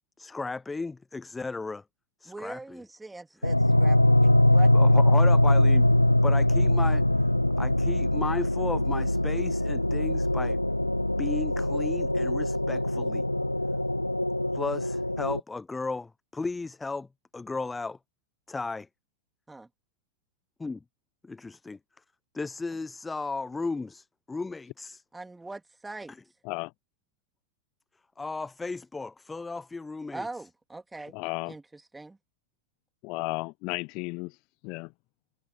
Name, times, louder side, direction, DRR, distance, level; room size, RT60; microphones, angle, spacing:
voice 1, 0.2-1.8 2.2-2.8 4.7-5.8 6.2-7.0 7.6-10.6 11.2-13.2 14.5-17.1 17.3-18.0 18.5-18.9 20.6-20.8 21.2-21.8 22.3-25.0 28.2-30.3, left 3 dB, 10° left, 0.6 m, -34 dB
voice 2, 2.2-4.7 19.5-19.7 25.1-26.1 30.1-31.2 31.5-32.2, right 2 dB, 10° right, 2.9 m, -41 dB
sound 1, 3.4-15.4, left 1 dB, 85° left, 0.8 m, -23 dB
voice 3, 31.1-31.5 33.0-34.3 34.6-34.9, left 28 dB, 45° left, 0.8 m, -33 dB
figure-of-eight pair, 90°, 0 cm